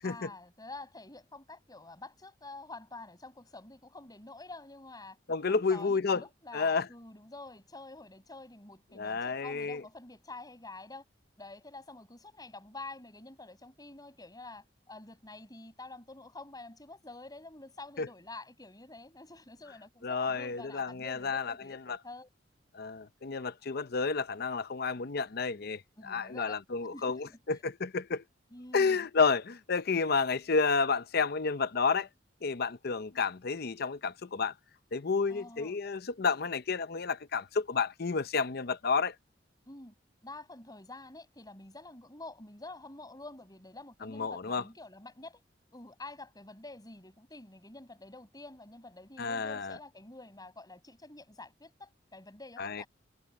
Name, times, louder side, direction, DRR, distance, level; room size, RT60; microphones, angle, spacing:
voice 1, 0.0-5.2 5.5-11.0 11.4-22.3 26.0-26.6 26.9-27.4 28.5-29.1 35.3-35.8 39.7-39.9 40.2-45.4 45.7-52.9, left 2 dB, 20° left, 8.0 m, -48 dB
voice 2, 5.3-6.2 6.5-6.9 9.0-9.8 18.0-18.1 20.0-22.0 22.7-28.2 28.7-32.1 32.4-34.5 34.9-39.1 44.0-44.6 49.2-49.8 52.6-52.8, left 4 dB, 55° left, 0.7 m, -31 dB
head